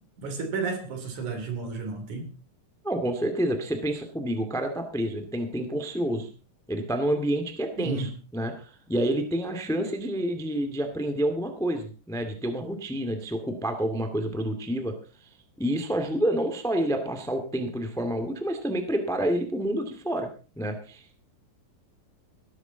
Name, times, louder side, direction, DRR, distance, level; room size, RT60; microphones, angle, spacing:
voice 1, 0.0-2.4 7.8-8.2, right 4 dB, 55° right, 6 dB, 4.0 m, -32 dB
voice 2, 2.8-6.3 6.7-14.9 15.6-20.3 20.5-21.2, right 1 dB, 5° left, 6 dB, 0.6 m, -28 dB
17.5 x 13.0 x 4.0 m, 0.37 s
omnidirectional pair, 4.4 m